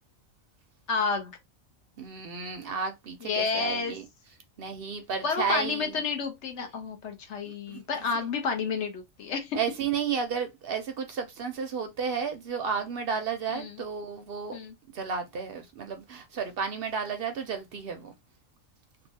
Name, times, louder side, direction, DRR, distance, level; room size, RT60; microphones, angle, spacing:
voice 1, 0.9-1.4 3.2-4.0 5.2-9.6 13.5-13.8 14.5-14.7, left 5 dB, 65° left, 1.0 m, -30 dB
voice 2, 2.0-4.0 4.6-5.9 7.5-7.8 9.5-14.6 14.9-18.2, right 6 dB, 60° right, 0.6 m, -32 dB
2.9 x 2.4 x 2.6 m
omnidirectional pair, 1.4 m